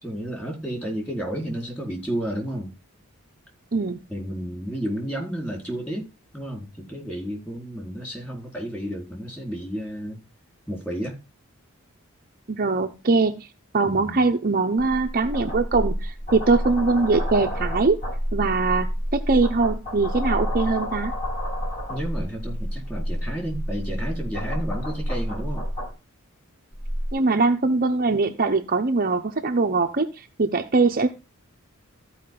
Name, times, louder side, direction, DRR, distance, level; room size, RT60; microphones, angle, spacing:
voice 1, 0.0-2.7 4.1-6.1 6.3-10.2 10.7-11.2 13.8-14.3 21.9-25.6, equal, 10° left, 4.2 m, -31 dB
voice 2, 12.5-13.4 13.7-18.0 18.3-21.1 27.1-31.1, right 3 dB, 40° right, 0.8 m, -22 dB
sound 1, 14.8-25.9 26.7-27.1, equal, 30° left, 6.7 m, -29 dB
14.5 x 5.1 x 3.8 m
head